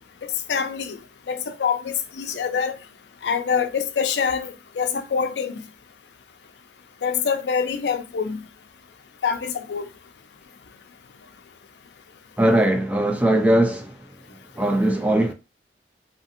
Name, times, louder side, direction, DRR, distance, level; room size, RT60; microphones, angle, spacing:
voice 1, 0.5-1.0 1.3-2.7 3.2-5.6 7.0-8.4 9.2-9.8, left 6 dB, 70° left, 0.4 m, -25 dB
voice 2, 12.4-14.0 14.6-15.3, right 1 dB, 10° right, 0.4 m, -20 dB
2.7 x 2.5 x 2.6 m
head